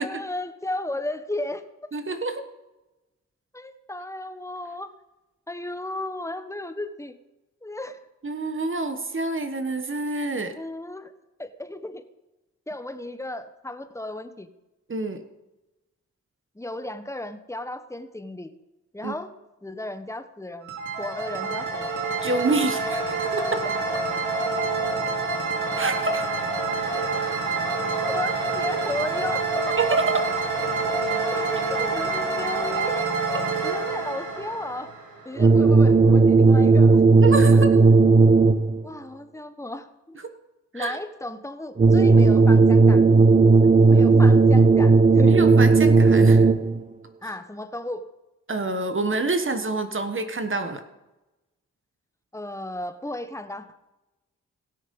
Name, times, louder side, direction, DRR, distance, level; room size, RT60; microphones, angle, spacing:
voice 1, 0.0-1.6 3.5-4.9 5.5-7.1 7.6-8.0 10.5-11.1 11.4-12.0 12.7-14.5 16.5-18.5 18.9-19.3 19.6-20.7 21.0-21.9 28.1-29.7 31.3-33.2 33.6-34.9 35.2-37.6 38.8-40.2 40.7-43.1 43.6-45.4 47.2-48.0 52.3-53.7, left 1 dB, 10° left, 10 dB, 1.2 m, -34 dB
voice 2, 1.9-2.4 8.2-10.5 14.9-15.2 19.0-19.1 22.2-23.7 25.8-26.3 29.8-30.4 37.2-37.7 40.2-40.3 40.7-41.0 44.1-44.2 45.2-46.5 48.5-50.8, right 3 dB, 40° right, 8 dB, 1.3 m, -27 dB
sound 1, 20.6-35.5, right 3 dB, 80° right, 2.6 m, -27 dB
sound 2, 35.4-38.8 41.8-46.8, right 4 dB, 25° right, 0.6 m, -15 dB
17.0 x 6.5 x 5.3 m, 1.0 s
cardioid pair, 50°, 31 cm